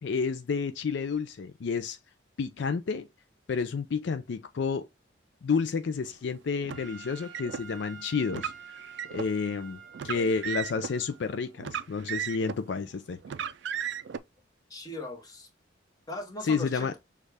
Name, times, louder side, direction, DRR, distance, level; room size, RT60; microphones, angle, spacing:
voice 1, 0.0-2.0 2.4-3.1 3.5-4.9 5.4-8.5 9.1-13.2 16.4-16.9, left 5 dB, 65° left, 0.4 m, -30 dB
Car, 6.6-7.6 8.3-9.3 9.9-10.9 11.6-12.7 13.2-14.2, right 8 dB, 65° right, 0.4 m, -35 dB
Trumpet, 6.7-11.3, right 7 dB, ahead, 1.6 m, -48 dB
voice 2, 14.7-15.5 16.1-17.0, left 2 dB, 20° left, 1.2 m, -39 dB
6.4 x 2.4 x 3.3 m
head